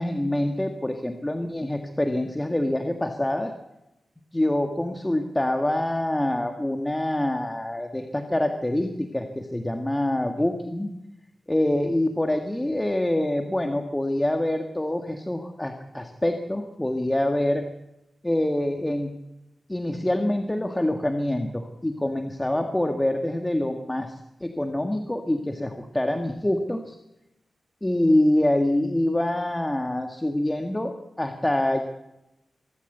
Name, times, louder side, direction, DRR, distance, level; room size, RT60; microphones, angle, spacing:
voice 1, 0.0-3.5 4.3-10.9 11.5-17.7 18.2-19.2 19.7-24.1 24.4-27.0 27.8-31.8, left 1 dB, 15° left, 5 dB, 1.9 m, -25 dB
24.5 x 13.0 x 8.1 m, 0.90 s
cardioid pair, 70°, 0 cm